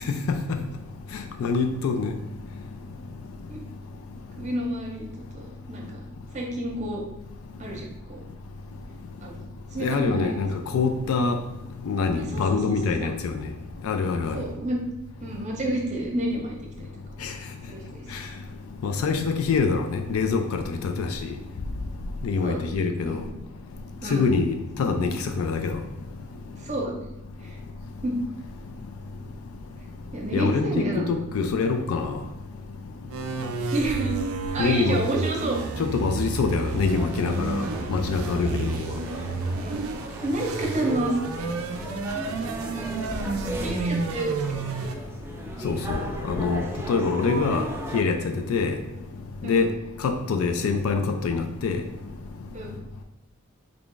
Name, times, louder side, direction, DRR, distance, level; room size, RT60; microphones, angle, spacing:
voice 1, 0.1-0.6 1.1-2.2 9.8-10.5 10.7-11.4 11.8-13.4 13.8-14.4 17.2-17.3 18.1-18.2 18.8-21.3 22.2-23.2 24.1-25.8 30.3-32.2 34.6-35.0 35.8-39.0 45.6-46.6 46.9-47.7 47.9-48.8 49.4-49.7 50.0-51.8, left 4 dB, 85° left, 0.3 m, -25 dB
voice 2, 4.4-5.1 5.3-6.0 6.3-7.0 7.6-8.2 9.2-9.4 9.7-10.3 12.3-13.1 14.3-14.8 15.2-16.9 17.7-18.0 22.4-22.8 23.0-23.2 24.0-24.3 26.6-27.0 27.4-27.6 28.0-28.1 30.1-31.0 33.7-34.1 34.5-35.6 38.4-38.6 39.6-39.9 40.2-41.5 43.5-44.6 49.4-49.7 52.5-52.7, right 1 dB, 35° right, 0.7 m, -30 dB
sound 1, 33.1-44.9, right 4 dB, 85° right, 0.4 m, -31 dB
sound 2, 37.2-48.0, right 1 dB, 10° right, 0.3 m, -36 dB
3.4 x 2.4 x 3.7 m
head